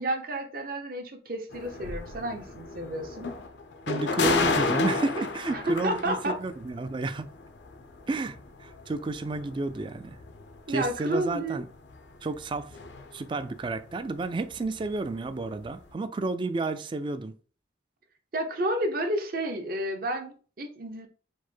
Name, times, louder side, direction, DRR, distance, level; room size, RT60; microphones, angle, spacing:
voice 1, 0.0-3.3 5.5-6.4 10.7-11.6 18.3-21.1, right 1 dB, 50° right, 0.8 m, -31 dB
sound 1, 1.5-13.4 13.6-15.3 15.6-15.8, left 3 dB, 75° left, 0.6 m, -33 dB
voice 2, 3.9-7.3 8.1-10.2 10.7-11.7 12.2-12.8 13.1-17.3, right 3 dB, 25° right, 0.3 m, -31 dB
4.5 x 2.1 x 4.5 m
head